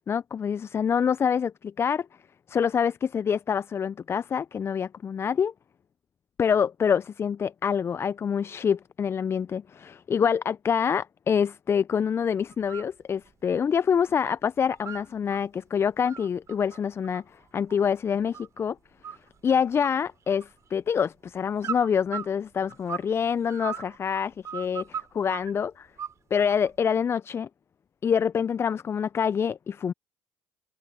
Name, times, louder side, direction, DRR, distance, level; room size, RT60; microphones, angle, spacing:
voice 1, 0.1-2.1 2.5-5.5 6.4-17.2 17.5-18.8 19.4-25.9 26.3-27.5 28.0-29.9, left 7 dB, 35° left, 0.6 m, -26 dB
sound 1, 12.5-12.9 13.3-14.2 14.5-15.4 15.8-18.6 19.0-19.5 19.8-20.8 21.6-23.1 23.4-25.5 26.0-26.7, right 8 dB, 45° right, 6.7 m, -38 dB
hypercardioid pair, 60°, 7 cm